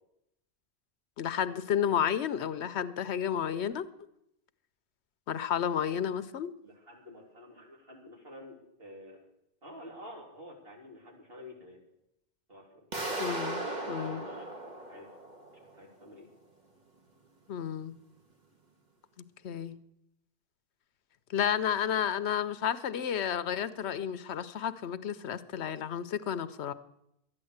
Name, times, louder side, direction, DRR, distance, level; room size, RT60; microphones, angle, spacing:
voice 1, 1.2-3.8 5.3-6.5 13.2-13.6 13.9-14.2 17.5-18.0 19.4-19.8 21.3-26.7, left 9 dB, 85° left, 14 dB, 1.0 m, -31 dB
voice 2, 5.6-5.9 6.6-9.2 9.6-11.8 12.5-12.7 13.2-14.5 14.8-15.1 15.7-16.3, equal, 60° right, -1 dB, 3.6 m, -49 dB
sound 1, 12.9-15.8, right 2 dB, 40° right, 2.0 m, -37 dB
12.5 x 9.8 x 7.9 m, 0.81 s
omnidirectional pair, 1.1 m